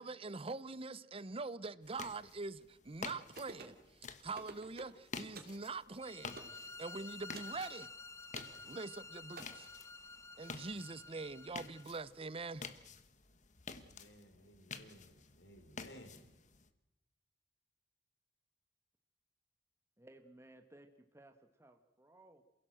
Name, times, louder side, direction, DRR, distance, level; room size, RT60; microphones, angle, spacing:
voice 1, 0.0-3.8 4.2-7.9 8.6-9.7 10.4-12.6, right 3 dB, 30° right, 0.7 m, -44 dB
sound 1, 1.8-16.7, left 5 dB, 45° left, 1.4 m, -51 dB
sound 2, 3.4-3.8 4.3-5.0 5.3-5.6 6.4-6.6 7.3-7.6 8.3-8.6 9.4-9.5, right 3 dB, 55° right, 2.8 m, -50 dB
sound 3, 6.0-11.8, left 3 dB, 15° left, 0.8 m, -51 dB
voice 2, 13.7-16.3, equal, 75° left, 4.3 m, -58 dB
voice 3, 20.0-21.3 21.6-22.4, right 1 dB, 15° right, 1.3 m, -59 dB
28.0 x 16.5 x 7.7 m
head